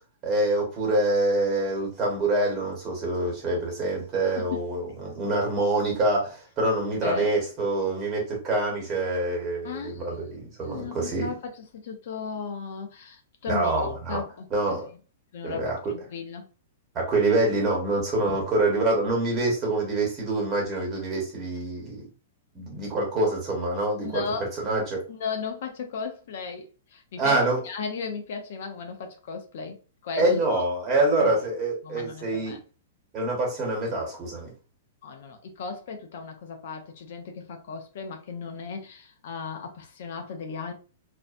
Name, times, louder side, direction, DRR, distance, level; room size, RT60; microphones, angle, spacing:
voice 1, 0.2-11.3 13.5-14.2 14.5-14.9 15.4-15.8 16.9-22.0 22.5-24.2 24.6-25.0 27.2-27.6 30.2-32.6 33.1-34.5, right 2 dB, 30° right, 1.3 m, -26 dB
voice 2, 7.0-7.4 9.6-10.1 10.6-14.8 15.3-16.5 18.3-18.4 24.0-24.5 25.1-27.4 27.6-29.8 30.0-30.6 31.2-31.4 31.8-32.6 35.0-40.7, left 5 dB, 65° left, 0.6 m, -36 dB
2.6 x 2.1 x 2.5 m
hypercardioid pair, 140°, 0 cm